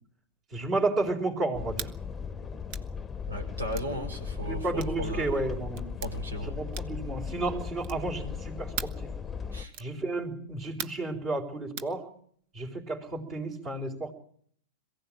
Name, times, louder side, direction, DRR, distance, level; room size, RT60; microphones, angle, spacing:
voice 1, 0.5-1.9 4.5-5.9 6.4-8.9 9.8-12.0 12.5-14.1, right 2 dB, 30° right, -4 dB, 4.2 m, -32 dB
sound 1, 1.5-9.6, left 6 dB, 15° left, 1.1 m, -37 dB
sound 2, 1.7-2.0 2.7-2.9 3.7-3.9 4.8-5.0 5.7-6.1 6.7-7.1 7.8-8.1 8.8-9.0 9.7-10.0 10.8-11.1 11.8-11.9, right 8 dB, 50° right, 1.2 m, -39 dB
voice 2, 3.3-5.4 6.0-6.6 9.5-9.7, equal, 90° right, 5 dB, 5.5 m, -36 dB
22.5 x 16.5 x 9.0 m, 0.63 s
hypercardioid pair, 110°, 0 cm